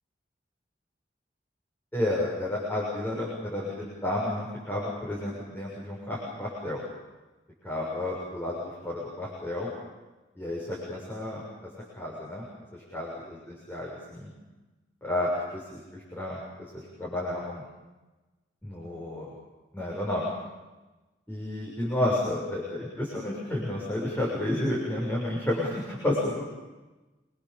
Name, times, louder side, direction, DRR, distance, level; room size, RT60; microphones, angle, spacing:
voice 1, 1.9-6.8 7.6-9.7 10.4-11.7 12.0-12.5 12.7-14.3 15.0-17.6 18.6-19.3 19.7-20.3 21.3-26.5, left 1 dB, 10° left, -5 dB, 7.0 m, -31 dB
28.0 x 23.5 x 7.2 m, 1.1 s
head